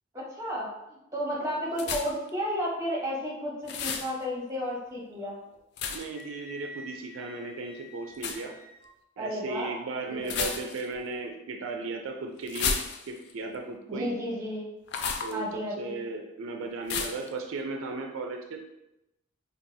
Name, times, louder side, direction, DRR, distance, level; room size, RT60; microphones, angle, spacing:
voice 1, 0.1-5.4 9.2-9.8 10.1-10.5 13.9-14.7 15.3-16.0, equal, 15° right, -4 dB, 0.9 m, -33 dB
voice 2, 1.4-1.9 5.9-8.5 9.2-12.8 13.1-14.1 15.2-18.6, right 3 dB, 75° right, 3 dB, 0.4 m, -36 dB
sound 1, 1.8-2.3 3.7-4.1 5.8-6.2 8.1-8.4 10.2-10.9 12.5-13.3 14.9-15.3 16.9-17.3, left 5 dB, 55° left, 0.3 m, -32 dB
Wind instrument woodwind instrument, 6.1-8.9, equal, 75° left, 1.0 m, -48 dB
4.6 x 2.4 x 2.7 m, 0.89 s
head